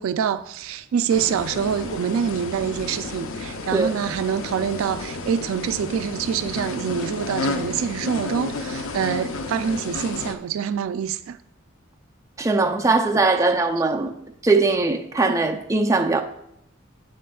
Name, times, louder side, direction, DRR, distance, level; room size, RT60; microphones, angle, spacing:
voice 1, 0.0-11.4, right 8 dB, 80° right, 0.3 m, -26 dB
sound 1, 1.1-10.3, left 3 dB, 75° left, 0.6 m, -32 dB
voice 2, 12.4-14.1 14.4-16.2, right 3 dB, 15° right, 0.4 m, -20 dB
8.3 x 7.5 x 2.3 m
head